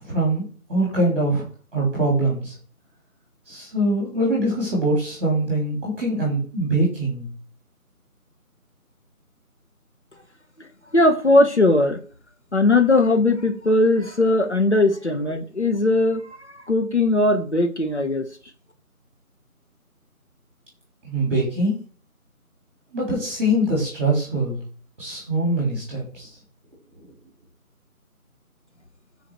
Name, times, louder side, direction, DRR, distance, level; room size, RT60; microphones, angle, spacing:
voice 1, 0.0-0.4 0.7-1.4 1.7-2.5 3.5-7.3 21.0-21.8 22.9-24.6 25.0-26.3, right 1 dB, 10° right, -4 dB, 2.9 m, -23 dB
voice 2, 10.9-12.0 12.5-18.3, left 2 dB, 50° left, 6 dB, 1.4 m, -19 dB
12.0 x 5.0 x 4.7 m, 0.43 s
figure-of-eight pair, 170°, 44 cm